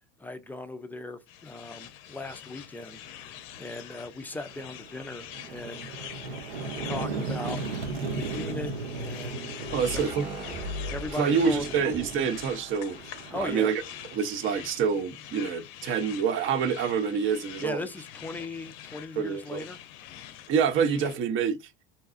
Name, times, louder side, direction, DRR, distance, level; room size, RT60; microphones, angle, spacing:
voice 1, 0.2-3.0 3.6-5.9 6.8-7.6 8.1-9.6 9.9-10.2 10.9-11.6 13.3-13.7 17.6-19.8, left 2 dB, 5° left, 0.3 m, -38 dB
sound 1, 1.3-21.2, left 11 dB, 60° left, 0.5 m, -45 dB
sound 2, 3.5-3.7 4.1-14.9, right 4 dB, 80° right, 0.7 m, -37 dB
sound 3, 9.6-14.1 14.4-14.5, equal, 65° right, 1.5 m, -40 dB
voice 2, 9.7-10.3 11.2-13.8 14.1-17.8 19.2-19.6 20.5-21.6, right 6 dB, 40° right, 0.6 m, -27 dB
2.7 x 2.3 x 2.4 m
hypercardioid pair, 80°, 31 cm